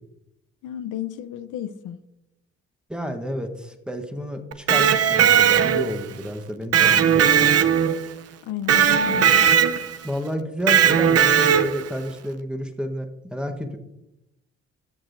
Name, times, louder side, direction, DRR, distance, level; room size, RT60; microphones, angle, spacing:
voice 1, 0.6-2.0 8.4-9.4, left 10 dB, 80° left, 0.6 m, -32 dB
voice 2, 2.9-7.5 10.0-13.8, equal, 5° right, 1.0 m, -31 dB
Electric guitar, 4.5-6.0 6.7-8.1 8.7-10.0 10.7-11.9, right 8 dB, 55° right, 0.7 m, -18 dB
14.0 x 6.5 x 2.6 m
cardioid pair, 90°, 30 cm